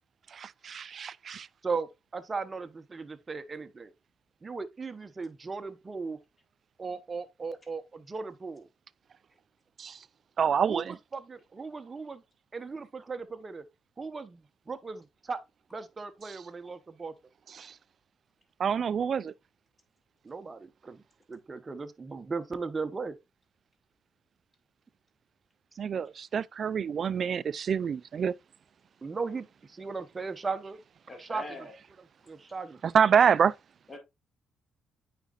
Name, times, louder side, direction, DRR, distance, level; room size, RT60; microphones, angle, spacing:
voice 1, 0.3-1.5 9.8-10.0 10.4-10.9 17.6-17.7 18.6-19.3 25.8-28.3 32.9-33.5, right 7 dB, 50° right, 0.3 m, -26 dB
voice 2, 1.6-3.9 4.4-6.2 6.8-8.7 10.7-12.2 12.5-13.6 14.0-15.4 15.7-17.1 20.2-21.0 21.3-23.2 29.0-30.8 31.2-31.4 32.3-33.1, right 4 dB, 30° right, 0.9 m, -37 dB
voice 3, 31.1-31.7 33.9-34.0, left 2 dB, 20° left, 2.1 m, -42 dB
8.9 x 5.1 x 2.5 m
cardioid pair, 90°, 0 cm